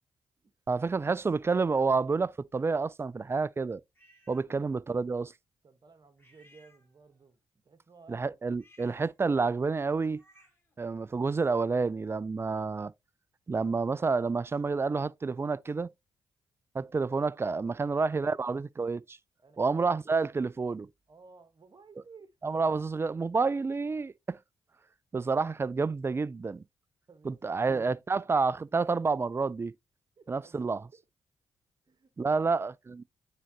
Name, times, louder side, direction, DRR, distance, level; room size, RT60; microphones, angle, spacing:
voice 1, 0.7-3.8 4.3-5.3 8.1-10.2 10.8-12.9 13.5-15.9 16.7-19.2 19.6-20.9 22.4-24.4 25.1-26.6 27.2-29.7 30.3-30.9 32.2-33.0, right 4 dB, 25° right, 0.3 m, -29 dB
sound 1, 3.9-4.5 6.2-7.3 8.5-10.8, equal, 20° left, 3.0 m, -63 dB
voice 2, 5.6-8.6 17.7-18.4 19.4-19.9 21.1-22.4 27.1-27.6 30.2-30.8 31.8-32.6, right 4 dB, 45° right, 1.5 m, -56 dB
9.0 x 3.8 x 3.0 m
supercardioid pair, 50°, 10 cm